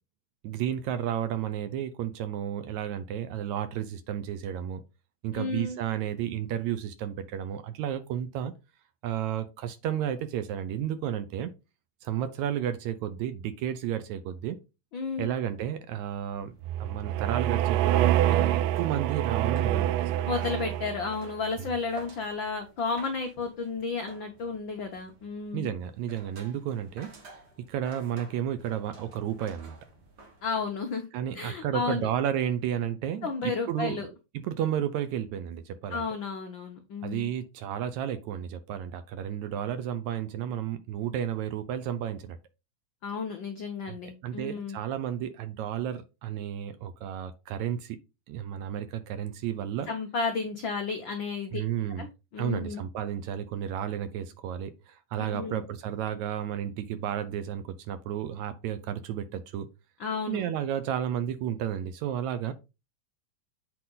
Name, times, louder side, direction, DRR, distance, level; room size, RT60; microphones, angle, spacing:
voice 1, 0.4-4.8 5.2-8.5 9.0-11.5 12.0-14.6 15.2-16.5 16.8-20.3 21.6-21.7 25.5-27.1 27.6-29.8 31.1-34.1 34.4-36.1 37.0-42.4 43.9-44.0 44.2-48.0 48.3-49.9 51.5-52.1 52.4-59.7 60.3-62.5, right 10 dB, 75° right, 1.8 m, -32 dB
voice 2, 5.3-5.8 14.9-15.3 20.3-25.7 30.4-31.1 31.3-32.1 33.2-34.1 35.9-37.3 43.0-44.8 49.9-51.6 52.0-52.1 52.3-52.8 55.2-55.6 60.0-60.4, left 4 dB, 90° left, 1.0 m, -32 dB
sound 1, 16.0-30.9, right 2 dB, 50° right, 1.2 m, -53 dB
sound 2, 16.6-21.3, right 12 dB, 90° right, 2.2 m, -26 dB
8.3 x 4.5 x 3.8 m
omnidirectional pair, 3.7 m